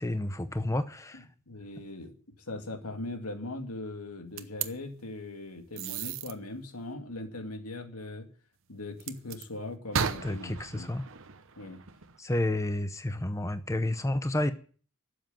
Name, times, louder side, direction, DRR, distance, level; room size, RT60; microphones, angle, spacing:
voice 1, 0.0-1.3 10.2-11.0 12.2-14.5, left 1 dB, 15° left, 0.7 m, -30 dB
voice 2, 1.1-2.1 2.5-8.3 8.7-10.9 11.6-11.8, left 2 dB, 85° left, 2.4 m, -40 dB
sound 1, 4.4-4.7 5.8-6.3 9.0-9.4 9.9-12.2, right 6 dB, 60° right, 1.0 m, -35 dB
12.0 x 7.8 x 9.2 m
head